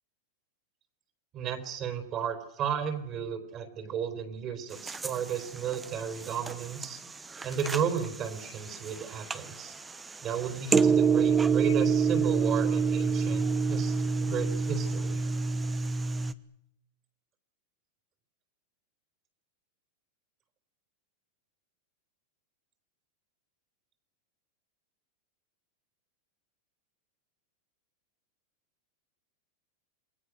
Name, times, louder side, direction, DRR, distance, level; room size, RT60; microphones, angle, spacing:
voice 1, 1.3-7.0 7.4-9.7 10.2-15.2, right 7 dB, 35° right, 8 dB, 4.2 m, -34 dB
sound 1, 4.7-16.3, right 5 dB, 15° right, 1.0 m, -28 dB
28.0 x 21.5 x 6.4 m, 0.73 s
supercardioid pair, 140°, 0 cm